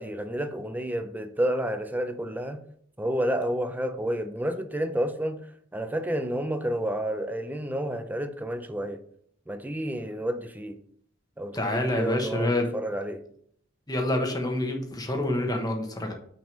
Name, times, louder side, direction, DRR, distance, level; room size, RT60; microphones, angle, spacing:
voice 1, 0.0-2.6 3.0-5.4 5.7-9.0 9.5-10.8 11.4-13.2, right 1 dB, 10° right, 0.5 m, -30 dB
voice 2, 11.5-12.7 13.9-16.1, left 1 dB, 20° left, 1.2 m, -27 dB
6.1 x 5.1 x 5.3 m
head